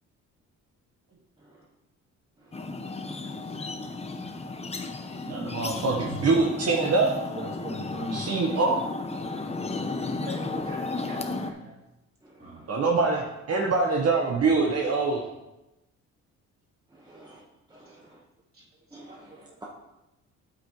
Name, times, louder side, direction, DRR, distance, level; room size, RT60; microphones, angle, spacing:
sound 1, 2.5-11.5, left 3 dB, 20° left, 0.8 m, -34 dB
voice 1, 3.1-3.7 4.2-4.3 5.3-5.5 5.9-6.0 7.3-8.2 9.2-9.4 10.2-11.7 12.4-12.6 19.1-19.5, right 1 dB, 30° right, -4 dB, 3.4 m, -41 dB
voice 2, 5.3-7.2 8.1-8.8 12.7-15.2, right 3 dB, 55° right, 0 dB, 1.1 m, -24 dB
voice 3, 17.1-17.4 17.7-18.0 18.9-19.3, right 2 dB, 15° right, -3 dB, 1.2 m, -49 dB
9.0 x 8.4 x 3.1 m, 0.95 s
cardioid pair, 90°, 30 cm